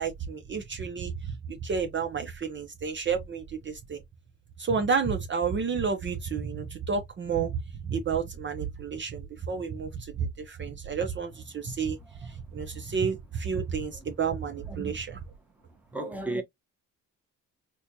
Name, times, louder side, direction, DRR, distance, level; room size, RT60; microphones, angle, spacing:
voice 1, 0.0-4.0 4.6-15.2, right 6 dB, 40° right, 0.7 m, -31 dB
voice 2, 15.9-16.4, right 2 dB, 5° right, 1.0 m, -34 dB
4.3 x 2.3 x 2.7 m
cardioid pair, 90°, 30 cm